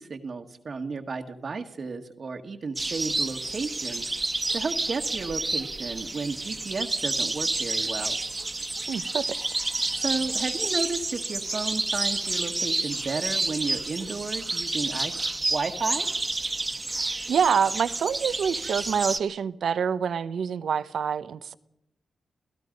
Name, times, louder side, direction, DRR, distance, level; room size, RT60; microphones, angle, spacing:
voice 1, 0.0-4.1 4.5-8.2 10.0-15.1 15.5-16.1, right 4 dB, 60° right, 1.6 m, -33 dB
sound 1, 2.8-19.2, right 2 dB, 30° right, 1.5 m, -29 dB
voice 2, 8.9-9.3 17.0-21.6, right 7 dB, 75° right, 0.8 m, -26 dB
29.5 x 16.5 x 5.3 m
supercardioid pair, 45°, 0 cm